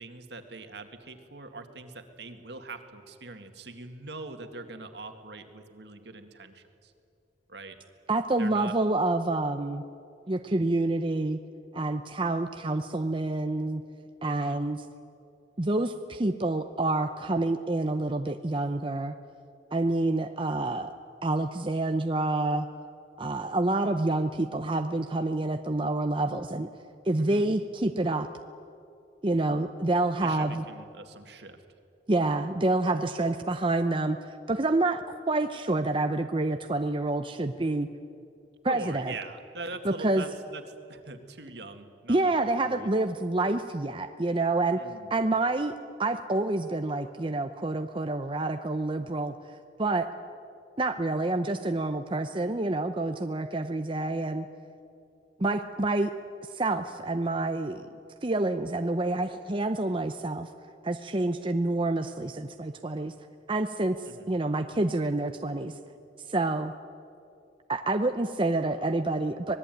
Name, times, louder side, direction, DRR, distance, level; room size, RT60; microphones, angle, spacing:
voice 1, 0.0-6.9 7.5-7.8 8.4-8.7 14.2-14.6 27.1-27.5 30.2-31.6 38.7-42.9 44.8-45.1 64.1-64.3, right 3 dB, 65° right, 6 dB, 2.1 m, -42 dB
voice 2, 8.1-9.8 10.3-11.4 11.7-13.8 14.2-14.8 15.6-19.1 19.7-21.0 21.2-22.7 23.2-26.7 27.0-28.3 29.2-30.6 32.1-37.9 38.6-39.1 39.8-40.2 42.1-44.8 45.1-45.7 46.0-50.1 50.8-54.5 55.4-56.1 56.5-57.9 58.2-60.5 60.8-63.1 63.5-65.7 66.3-66.7 67.7-69.5, right 2 dB, 30° right, 7 dB, 0.7 m, -28 dB
25.5 x 20.0 x 9.3 m, 2.6 s
head